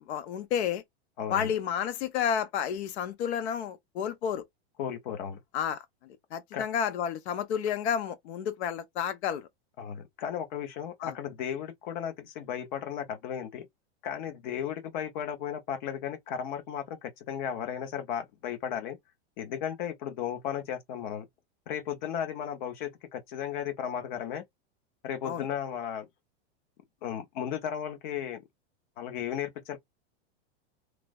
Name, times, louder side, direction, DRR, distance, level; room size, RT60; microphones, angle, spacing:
voice 1, 0.1-0.8 1.3-4.4 5.5-5.8 6.3-9.5 11.0-11.1 25.2-25.5, left 8 dB, 75° left, 0.7 m, -31 dB
voice 2, 1.2-1.5 4.8-5.4 6.5-6.7 9.8-13.7 14.0-19.0 19.4-21.3 21.7-24.4 25.0-26.1 27.0-28.4 29.0-29.8, left 9 dB, 45° left, 0.8 m, -35 dB
3.2 x 2.0 x 2.2 m
supercardioid pair, 165°, 33 cm